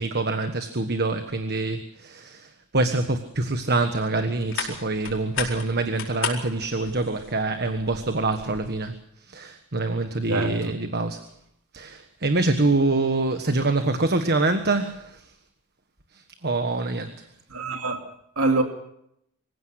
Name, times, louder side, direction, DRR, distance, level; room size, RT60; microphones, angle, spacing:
voice 1, 0.0-8.9 9.3-11.2 11.7-15.3 16.1-17.1, right 2 dB, 45° right, 1.5 m, -25 dB
sound 1, 3.6-8.8, left 6 dB, 60° left, 4.6 m, -36 dB
voice 2, 10.3-10.8 17.5-18.0 18.4-18.6, right 2 dB, 75° right, 2.6 m, -25 dB
25.5 x 16.0 x 6.4 m
head